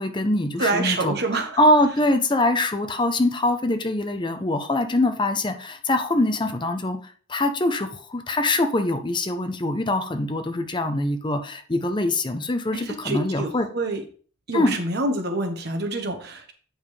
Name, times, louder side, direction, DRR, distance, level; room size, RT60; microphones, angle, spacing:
voice 1, 0.0-1.1 1.6-13.7 14.5-14.8, left 1 dB, 25° left, 7 dB, 0.6 m, -23 dB
voice 2, 0.6-1.6 12.7-14.0 14.5-16.5, right 2 dB, 55° right, 4 dB, 1.2 m, -27 dB
8.9 x 5.2 x 3.3 m, 0.43 s
head